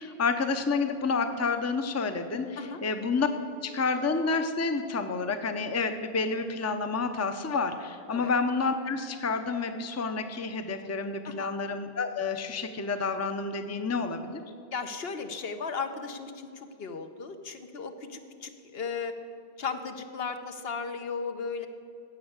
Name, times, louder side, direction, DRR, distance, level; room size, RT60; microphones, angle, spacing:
voice 1, 0.0-3.3 3.6-14.4, left 4 dB, 20° left, 7 dB, 0.6 m, -29 dB
voice 2, 14.7-19.1 19.6-21.7, left 5 dB, 70° left, 7 dB, 1.1 m, -36 dB
16.5 x 5.4 x 8.0 m, 2.3 s
omnidirectional pair, 1.0 m